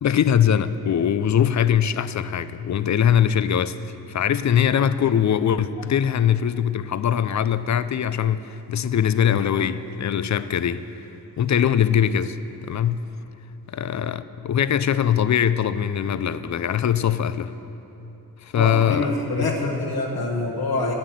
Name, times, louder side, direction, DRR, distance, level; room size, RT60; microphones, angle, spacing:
voice 1, 0.0-3.8 4.1-10.9 11.4-13.1 13.7-17.5 18.4-19.1 19.4-19.5, left 9 dB, 45° left, 14 dB, 0.6 m, -22 dB
voice 2, 18.5-20.9, left 2 dB, 70° left, -3 dB, 1.4 m, -26 dB
11.5 x 8.7 x 7.6 m, 3.0 s
cardioid pair, 60°, 39 cm